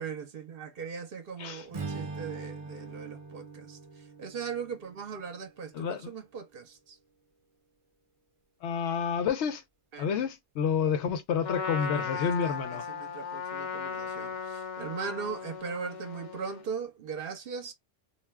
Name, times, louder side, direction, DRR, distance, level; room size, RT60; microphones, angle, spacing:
voice 1, 0.0-3.8 4.2-7.0 9.9-10.1 11.8-17.7, right 6 dB, 60° right, 0.8 m, -39 dB
Strum, 1.7-6.1, right 4 dB, 40° right, 0.5 m, -42 dB
voice 2, 5.7-6.1 8.6-9.6 10.0-12.9, left 7 dB, 90° left, 0.9 m, -29 dB
Trumpet, 11.4-16.7, left 6 dB, 50° left, 0.6 m, -37 dB
2.4 x 2.2 x 3.3 m
omnidirectional pair, 1.1 m